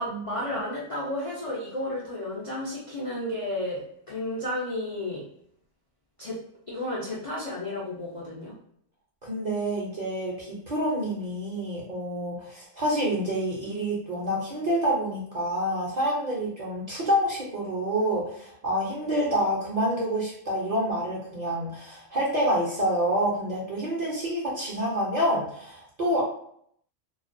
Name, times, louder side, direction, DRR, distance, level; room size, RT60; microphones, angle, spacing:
voice 1, 0.0-5.2 6.2-6.4 6.7-8.5, left 1 dB, 50° left, -6 dB, 0.4 m, -32 dB
voice 2, 9.2-26.2, equal, 45° right, -4 dB, 0.6 m, -27 dB
2.3 x 2.1 x 2.5 m, 0.67 s
omnidirectional pair, 1.3 m